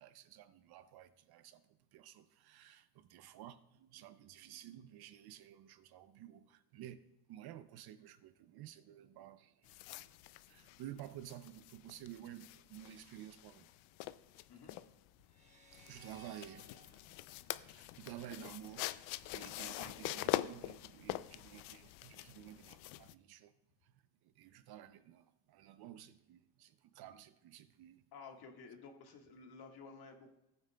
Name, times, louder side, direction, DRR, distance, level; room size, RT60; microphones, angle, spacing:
voice 1, 0.0-1.6 1.9-7.0 7.3-10.0 10.5-13.7 15.7-16.7 17.6-23.5 24.4-28.0, right 12 dB, 50° right, 0.6 m, -53 dB
sound 1, 9.7-23.1, left 16 dB, 85° left, 0.5 m, -44 dB
sound 2, 15.3-18.6, right 4 dB, 15° right, 1.4 m, -62 dB
voice 2, 28.1-30.3, left 4 dB, 50° left, 1.6 m, -53 dB
15.0 x 9.0 x 2.2 m
cardioid pair, 130°, 49 cm